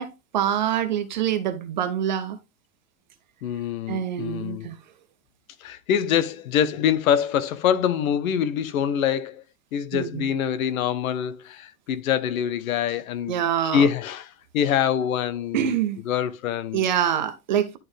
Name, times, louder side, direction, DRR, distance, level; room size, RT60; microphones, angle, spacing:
voice 1, 0.0-2.4 3.9-4.8 9.9-10.3 13.3-13.9 15.5-16.0 16.7-17.8, right 10 dB, 35° right, 0.4 m, -25 dB
voice 2, 3.4-4.7 5.6-9.4 9.7-13.4 13.7-14.3 14.5-15.8 16.0-16.8, left 9 dB, 70° left, 1.0 m, -25 dB
10.5 x 4.1 x 3.3 m
supercardioid pair, 175°, 43 cm